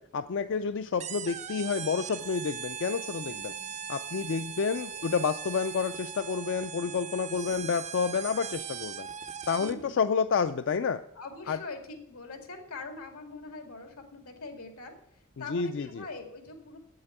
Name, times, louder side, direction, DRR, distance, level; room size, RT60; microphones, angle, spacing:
voice 1, 0.1-3.5 3.9-9.1 9.5-11.0 11.5-11.6 15.5-16.1, left 5 dB, 55° left, 10 dB, 0.4 m, -29 dB
sound 1, 1.0-9.9, right 8 dB, 30° right, 0.4 m, -39 dB
voice 2, 3.2-3.8 4.7-5.1 9.5-10.0 11.2-16.8, left 3 dB, 90° left, 4 dB, 2.2 m, -44 dB
8.0 x 7.8 x 8.8 m, 0.76 s
head